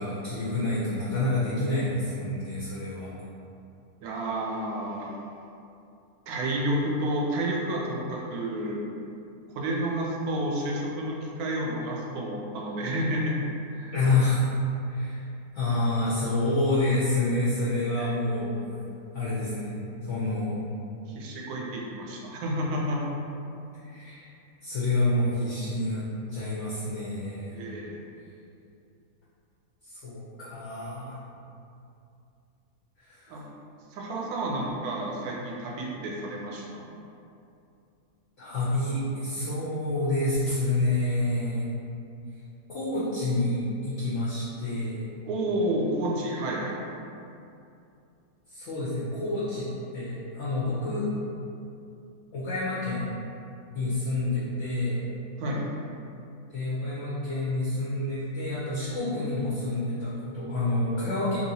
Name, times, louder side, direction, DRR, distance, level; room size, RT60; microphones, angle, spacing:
voice 1, 0.0-3.1 13.9-14.4 14.9-15.2 15.5-18.6 19.1-20.6 23.8-24.3 24.6-27.5 29.8-31.2 33.0-33.4 38.4-41.7 42.7-45.1 48.5-49.7 49.9-51.1 52.3-53.1 53.7-55.0 56.5-61.4, left 2 dB, 60° left, -9 dB, 0.9 m, -28 dB
voice 2, 4.0-5.1 6.3-8.8 9.5-13.4 13.7-13.9 18.0-18.1 21.1-23.2 27.5-28.0 33.3-33.4 33.9-36.9 45.3-46.8 55.4-55.7, right 1 dB, 75° right, -2 dB, 1.0 m, -30 dB
2.9 x 2.9 x 2.7 m, 2.6 s
omnidirectional pair, 1.7 m